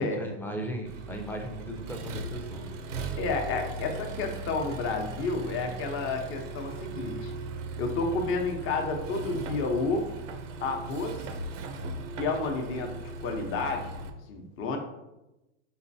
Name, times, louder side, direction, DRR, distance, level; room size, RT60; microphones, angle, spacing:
voice 1, 0.0-2.8, equal, 5° left, 2 dB, 0.6 m, -37 dB
Accelerating revving vroom, 0.9-14.1, right 3 dB, 80° right, 0.7 m, -38 dB
voice 2, 3.2-7.3 7.8-10.1 10.6-11.3 12.2-12.9 13.2-13.9 14.3-14.8, left 3 dB, 35° left, 3 dB, 0.9 m, -30 dB
5.6 x 3.1 x 2.7 m, 0.96 s
supercardioid pair, 120°, 37 cm